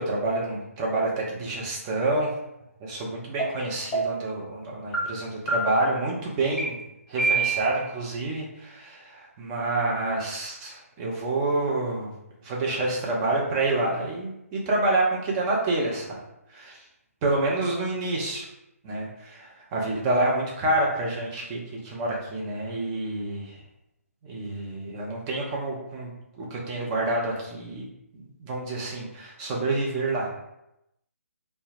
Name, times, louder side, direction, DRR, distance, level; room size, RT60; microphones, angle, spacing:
voice 1, 0.0-2.3 2.8-6.8 7.1-12.1 12.4-16.2 16.5-16.8 17.2-18.5 18.8-23.6 24.2-26.1 26.4-27.8 28.1-30.3, right 2 dB, 20° right, -2 dB, 0.5 m, -28 dB
sound 1, 3.4-3.5 3.9-4.3 4.9-5.0 5.5-5.9 6.6-6.7 7.2-7.8, right 3 dB, 10° left, 1.1 m, -26 dB
2.1 x 2.1 x 3.2 m, 0.85 s
figure-of-eight pair, 140°, 8 cm